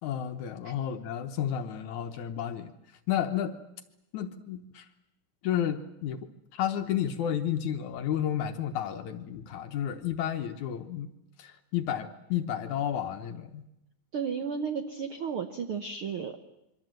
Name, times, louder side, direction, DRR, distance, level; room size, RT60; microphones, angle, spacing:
voice 1, 0.0-2.7 3.1-3.6 4.1-4.9 5.4-6.3 6.5-11.1 11.4-13.6, left 10 dB, 65° left, 7 dB, 2.1 m, -31 dB
voice 2, 14.1-16.3, right 6 dB, 85° right, 7 dB, 1.1 m, -33 dB
26.0 x 23.5 x 7.8 m, 0.85 s
omnidirectional pair, 4.2 m